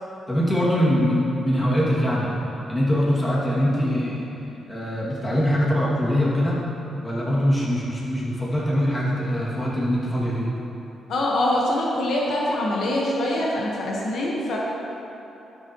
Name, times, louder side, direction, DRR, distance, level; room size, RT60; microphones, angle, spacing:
voice 1, 0.3-2.3 2.7-4.3 4.7-6.6 7.0-10.5, equal, 15° left, -7 dB, 2.5 m, -22 dB
voice 2, 11.1-14.6, left 1 dB, 70° left, -3 dB, 1.5 m, -24 dB
12.0 x 11.0 x 3.2 m, 3.0 s
cardioid pair, 110°, 0 cm